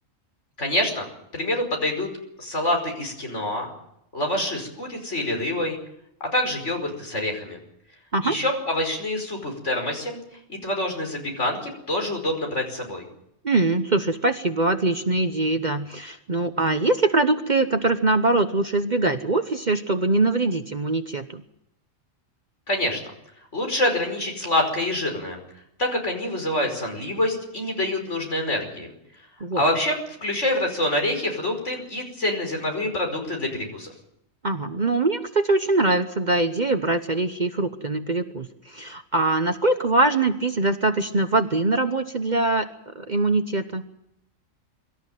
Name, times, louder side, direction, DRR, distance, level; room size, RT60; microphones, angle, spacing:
voice 1, 0.6-1.1 1.3-2.1 2.4-3.7 4.1-5.8 6.3-7.6 8.2-10.2 10.5-13.0 22.7-23.0 23.5-25.4 25.8-28.9 29.6-33.9, left 1 dB, 60° left, 2 dB, 5.6 m, -26 dB
voice 2, 13.4-21.4 29.4-29.6 34.4-42.7 42.9-43.8, right 2 dB, 40° right, 8 dB, 1.0 m, -23 dB
24.5 x 13.5 x 9.2 m, 0.78 s
omnidirectional pair, 1.4 m